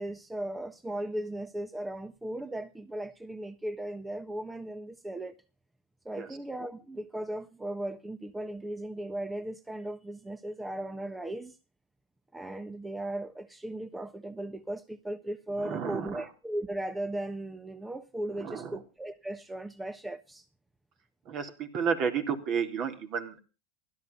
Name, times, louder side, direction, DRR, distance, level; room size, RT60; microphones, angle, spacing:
voice 1, 0.0-5.4 6.0-11.6 12.3-20.5, right 1 dB, 10° right, 1.2 m, -37 dB
voice 2, 15.6-16.3 18.4-18.8 21.3-23.4, right 6 dB, 45° right, 3.8 m, -32 dB
16.5 x 12.5 x 5.4 m
supercardioid pair, 120°, 0 cm